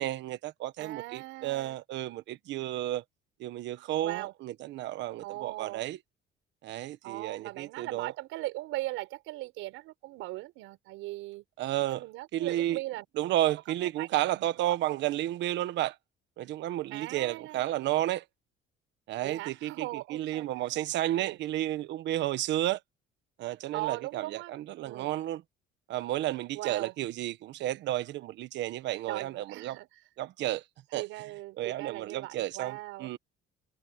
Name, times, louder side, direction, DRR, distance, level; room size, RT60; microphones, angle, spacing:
voice 1, 0.0-3.0 3.4-6.0 6.6-8.1 11.6-12.0 12.3-12.8 13.2-16.0 16.4-18.2 19.1-22.8 23.4-25.4 25.9-29.8 30.2-30.6 30.9-31.0 31.6-33.2, right 14 dB, 65° right, 1.3 m, -32 dB
voice 2, 0.8-1.8 4.0-4.3 5.2-5.8 7.0-11.4 11.9-13.0 13.8-14.1 14.4-14.8 16.9-17.7 19.2-20.5 21.2-21.4 23.7-24.6 24.8-25.1 26.5-26.9 29.1-29.9 30.9-33.1, right 18 dB, 90° right, 6.0 m, -39 dB
cardioid pair, 145°, 20 cm